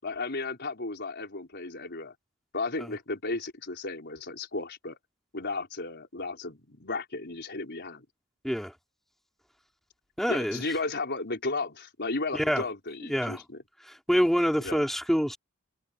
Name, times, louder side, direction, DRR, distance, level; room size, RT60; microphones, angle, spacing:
voice 1, 0.0-2.1 2.5-5.0 5.3-8.0 10.3-13.6 14.6-14.8, left 3 dB, 50° left, 5.1 m, -34 dB
voice 2, 10.2-10.6 12.3-12.6 13.1-13.4 13.9-15.4, equal, ahead, 5.0 m, -26 dB
head